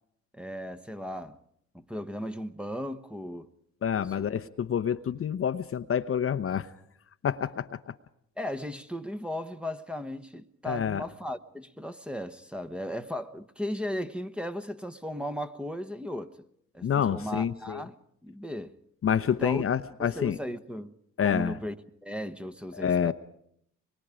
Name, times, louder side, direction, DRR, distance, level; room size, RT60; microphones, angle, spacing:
voice 1, 0.3-1.4 1.7-3.5 4.2-4.3 8.4-16.4 16.7-18.0 18.2-18.7 19.4-19.6 20.0-20.9 21.2-21.8 22.0-23.1, equal, 5° right, 1.1 m, -36 dB
voice 2, 3.8-6.7 7.2-7.7 10.6-11.0 16.8-17.8 19.0-20.4 21.2-21.5 22.8-23.1, left 8 dB, 40° left, 0.8 m, -27 dB
24.5 x 22.5 x 5.0 m
supercardioid pair, 70°, 33 cm